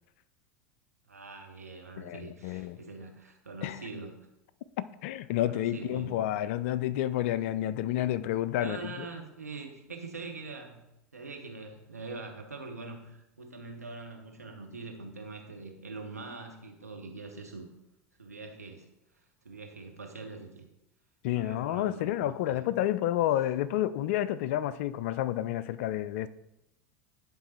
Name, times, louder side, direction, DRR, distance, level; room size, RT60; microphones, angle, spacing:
voice 1, 1.1-4.2 5.4-6.1 8.6-10.8 11.1-17.7 18.2-18.9 19.4-20.6 21.3-22.6, right 3 dB, 85° right, 1.1 m, -43 dB
voice 2, 2.0-2.8 3.6-3.8 4.8-9.1 21.2-26.3, left 13 dB, 55° left, 0.3 m, -30 dB
10.5 x 3.8 x 4.3 m
figure-of-eight pair, 80°, 8 cm